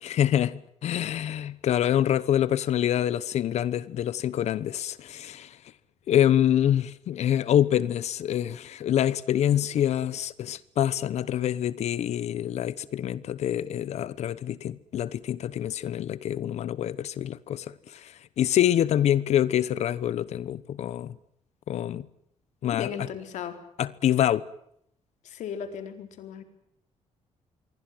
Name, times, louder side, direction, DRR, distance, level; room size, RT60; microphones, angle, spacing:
voice 1, 0.0-5.6 6.1-21.1 21.7-22.0 22.6-22.9 23.8-24.4, left 11 dB, 65° left, 1.1 m, -26 dB
voice 2, 22.7-23.6 25.2-26.4, left 8 dB, 90° left, 4.3 m, -36 dB
27.0 x 23.5 x 7.7 m
cardioid pair, 160°, 12 cm